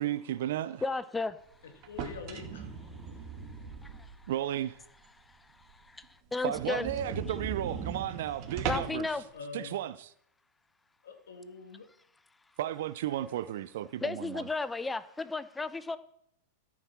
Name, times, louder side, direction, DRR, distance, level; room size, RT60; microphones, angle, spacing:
voice 1, 0.0-0.8 4.3-4.8 6.4-9.1 9.5-10.1 12.6-14.4, right 12 dB, 65° right, 0.6 m, -34 dB
voice 2, 0.8-1.4 3.8-4.1 5.8-6.9 8.6-9.2 14.0-16.0, left 3 dB, 10° left, 0.8 m, -34 dB
voice 3, 1.6-2.7 9.1-9.7 11.0-11.9 13.1-13.4, left 5 dB, 75° left, 2.3 m, -45 dB
sound 1, 1.8-4.4 4.8-4.9 5.3-5.4 5.7-5.8 6.0-6.1 6.5-9.1, right 6 dB, 45° right, 2.4 m, -38 dB
13.5 x 7.3 x 6.1 m
hypercardioid pair, 100°, 0 cm